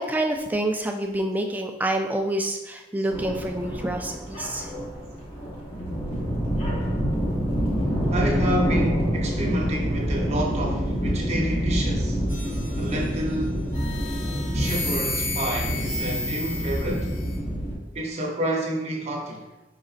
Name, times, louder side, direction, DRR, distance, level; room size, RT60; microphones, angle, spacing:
voice 1, 0.0-4.7 7.5-7.7, right 1 dB, 10° right, 4 dB, 0.3 m, -27 dB
sound 1, 3.1-17.8, equal, 30° left, 1.0 m, -27 dB
voice 2, 8.1-12.2 12.8-13.7 14.5-17.1 17.9-19.4, equal, 35° right, 0 dB, 0.7 m, -29 dB
sound 2, 12.3-13.2 13.7-17.4, left 2 dB, 80° left, 1.3 m, -33 dB
5.0 x 3.8 x 2.4 m, 1.0 s
head